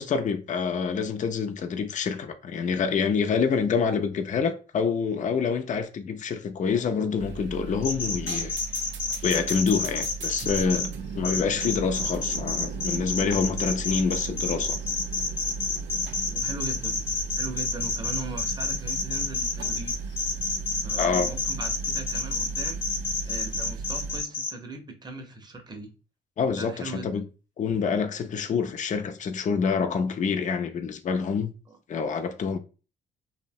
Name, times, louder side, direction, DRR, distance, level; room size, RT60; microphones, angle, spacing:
voice 1, 0.0-8.6 9.2-10.9 11.1-14.8 21.0-21.3 26.4-27.2 27.6-31.5 31.9-32.6, left 5 dB, 40° left, 0.4 m, -27 dB
sound 1, 7.2-24.2, right 5 dB, 70° right, 0.5 m, -36 dB
sound 2, 7.8-10.9 11.2-24.5, left 4 dB, 85° left, 0.8 m, -29 dB
voice 2, 16.3-17.0 17.4-20.0 20.7-22.8 23.1-25.9 26.5-27.3 31.7-31.8, right 2 dB, 20° right, 0.6 m, -39 dB
2.8 x 2.1 x 2.6 m
cardioid pair, 90°, 20 cm